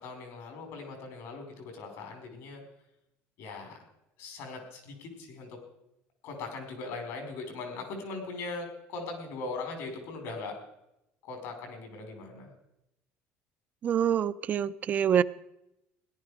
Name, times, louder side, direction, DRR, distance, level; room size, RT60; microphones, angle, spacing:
voice 1, 0.0-2.6 3.4-3.8 4.2-5.5 6.2-10.6 11.2-12.5, left 3 dB, 75° left, 4 dB, 4.8 m, -40 dB
voice 2, 13.8-15.2, right 9 dB, 35° right, 15 dB, 0.4 m, -26 dB
17.0 x 11.5 x 5.0 m, 0.85 s
cardioid pair, 150°, 5 cm